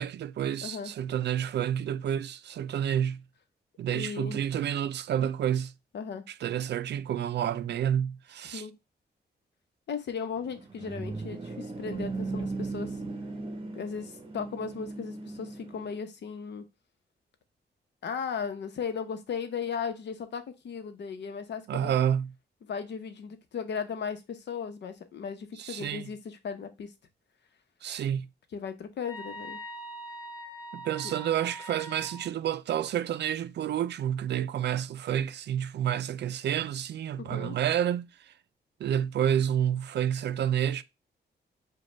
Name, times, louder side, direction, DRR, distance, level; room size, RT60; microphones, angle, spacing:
voice 1, 0.0-3.2 3.8-5.7 6.3-8.7 21.7-22.3 25.6-26.1 27.8-28.3 30.7-38.3 38.8-40.8, right 10 dB, 75° right, 0.4 m, -29 dB
voice 2, 0.6-0.9 3.9-4.4 5.9-6.2 8.5-8.8 9.9-12.9 13.7-16.7 18.0-22.0 22.6-26.9 28.5-29.6 37.2-37.6, left 6 dB, 75° left, 0.9 m, -36 dB
sound 1, 10.4-16.0, right 3 dB, 30° right, 0.8 m, -37 dB
sound 2, 29.0-32.3, right 1 dB, 20° left, 1.0 m, -42 dB
5.1 x 2.3 x 4.3 m
wide cardioid pair, 125°, 18 cm